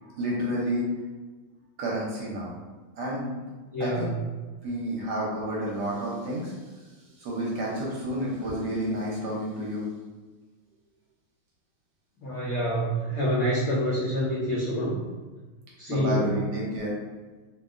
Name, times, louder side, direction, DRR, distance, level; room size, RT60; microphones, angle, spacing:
voice 1, 0.0-0.9 1.8-2.6 3.0-3.4 3.8-4.1 4.6-6.8 7.2-9.9 13.1-13.2 15.9-16.9, equal, 70° right, -4 dB, 1.1 m, -30 dB
voice 2, 3.7-4.2 12.2-15.0 15.8-16.3, equal, 85° left, -7 dB, 0.7 m, -27 dB
2.8 x 2.7 x 2.4 m, 1.3 s
omnidirectional pair, 2.2 m